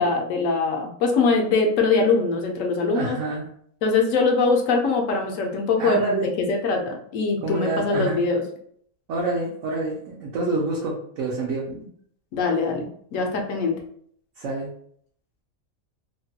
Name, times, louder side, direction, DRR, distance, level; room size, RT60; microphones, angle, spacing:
voice 1, 0.0-3.2 3.8-6.2 6.5-8.4 11.7-11.8 12.3-13.8, left 4 dB, 70° left, 3 dB, 1.0 m, -22 dB
voice 2, 2.9-3.4 5.8-6.3 7.4-8.2 9.1-11.7 14.4-14.7, right 2 dB, 70° right, -3 dB, 0.9 m, -27 dB
2.9 x 2.2 x 2.7 m, 0.63 s
omnidirectional pair, 1.4 m